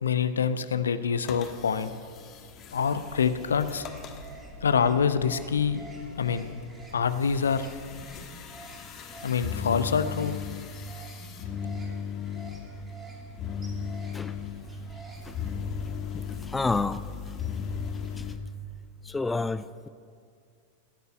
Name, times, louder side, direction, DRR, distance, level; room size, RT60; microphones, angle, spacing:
voice 1, 0.0-1.9 2.7-3.9 4.6-5.8 6.2-6.5 6.9-7.7 9.2-10.4, left 6 dB, 70° left, 12 dB, 0.7 m, -26 dB
sound 1, 1.2-18.4, left 6 dB, 35° left, 1.4 m, -37 dB
sound 2, 3.1-18.4, right 2 dB, 20° right, 2.8 m, -48 dB
voice 2, 16.5-17.0 19.1-19.9, left 3 dB, 10° left, 14 dB, 0.3 m, -28 dB
17.0 x 6.8 x 9.8 m, 2.2 s
figure-of-eight pair, 90°, 0 cm